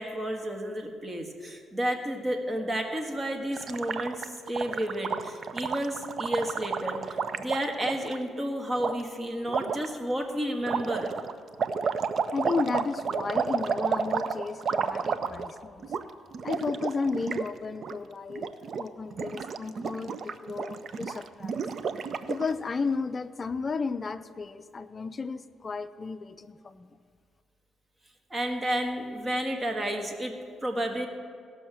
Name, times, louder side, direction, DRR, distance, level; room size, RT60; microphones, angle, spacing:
voice 1, 0.0-11.1 28.3-30.3 30.6-31.1, equal, 25° right, 3 dB, 1.6 m, -31 dB
Gurgling, 3.5-8.2 8.8-8.9 9.5-9.9 10.6-15.6 15.8-16.0 16.3-17.5 17.7-17.9 18.3-18.8 19.1-22.5, right 6 dB, 55° right, 0.5 m, -31 dB
voice 2, 12.2-15.9 16.4-21.7 22.3-26.9, left 4 dB, 35° left, 11 dB, 0.5 m, -33 dB
17.0 x 6.3 x 6.1 m, 2.1 s
cardioid pair, 90°, 0 cm